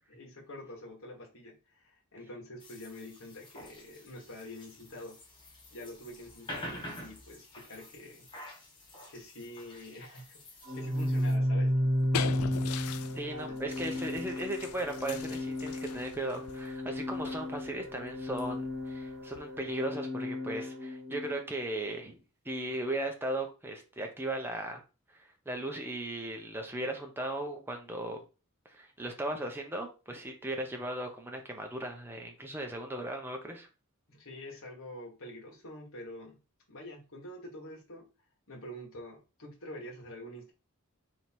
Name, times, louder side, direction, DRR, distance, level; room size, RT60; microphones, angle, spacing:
voice 1, 0.1-5.2 5.7-8.3 9.1-10.4 10.7-11.7 13.3-13.6 34.1-36.4 36.7-38.1 38.5-40.5, left 1 dB, 65° left, -1 dB, 1.5 m, -46 dB
sound 1, 2.6-11.3, equal, 20° left, 1.2 m, -48 dB
Organ, 10.6-21.4, left 1 dB, 45° right, 1.5 m, -33 dB
sound 2, 11.7-19.8, left 8 dB, 85° left, 0.4 m, -42 dB
voice 2, 13.1-22.2 22.4-24.8 25.1-28.2 28.6-33.7, right 1 dB, 10° right, 3 dB, 0.8 m, -37 dB
3.6 x 3.0 x 4.4 m, 0.31 s
head